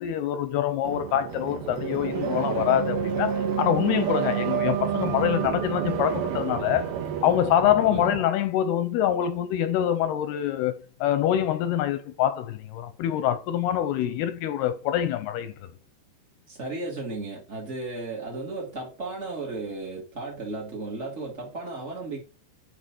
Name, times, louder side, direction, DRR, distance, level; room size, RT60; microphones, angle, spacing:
voice 1, 0.0-6.9 7.2-15.7, left 11 dB, 80° left, 2.5 m, -25 dB
sound 1, 0.8-8.2, right 8 dB, 65° right, 3.3 m, -29 dB
voice 2, 16.5-22.2, right 3 dB, 30° right, 1.3 m, -34 dB
9.9 x 4.9 x 5.9 m
omnidirectional pair, 5.1 m